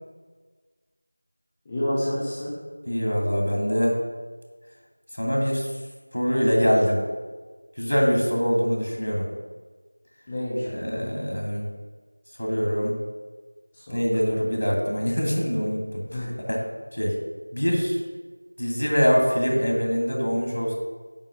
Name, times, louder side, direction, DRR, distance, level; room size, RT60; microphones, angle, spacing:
voice 1, 1.7-2.5 10.3-11.0 13.7-14.3 16.1-16.3, left 1 dB, 5° left, -10 dB, 0.6 m, -29 dB
voice 2, 2.9-4.0 5.2-5.7 6.1-7.0 7.8-9.3 10.7-11.6 12.4-12.9 13.9-16.6 16.9-17.2 17.5-18.0 18.6-20.7, equal, 85° left, -1 dB, 2.3 m, -24 dB
8.8 x 3.1 x 5.9 m, 1.4 s
figure-of-eight pair, 180°, 0 cm